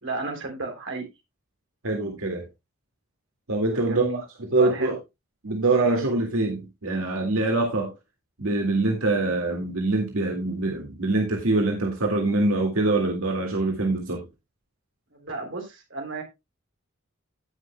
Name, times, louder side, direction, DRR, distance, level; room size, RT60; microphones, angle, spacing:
voice 1, 0.0-1.1 3.8-4.2 4.6-4.9 15.1-16.2, right 3 dB, 60° right, 3.3 m, -33 dB
voice 2, 1.8-2.5 3.5-4.0 4.5-5.0 5.4-7.9 8.4-14.3, right 2 dB, 85° right, 2.0 m, -24 dB
17.0 x 6.1 x 2.2 m
head